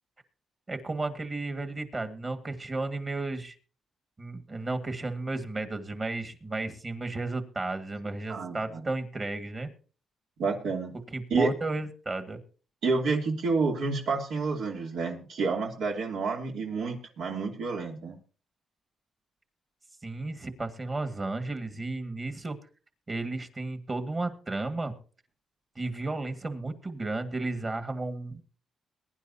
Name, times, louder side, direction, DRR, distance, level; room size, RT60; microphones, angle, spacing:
voice 1, 0.7-3.6 4.2-9.7 11.1-12.4 20.0-22.6 23.1-24.9 25.8-28.4, right 2 dB, 25° right, 7 dB, 1.8 m, -33 dB
voice 2, 8.3-8.8 10.4-10.9 11.3-11.5 12.8-18.2, right 4 dB, 80° right, 1 dB, 2.8 m, -29 dB
22.0 x 10.5 x 2.8 m, 0.39 s
cardioid pair, 120°, 0 cm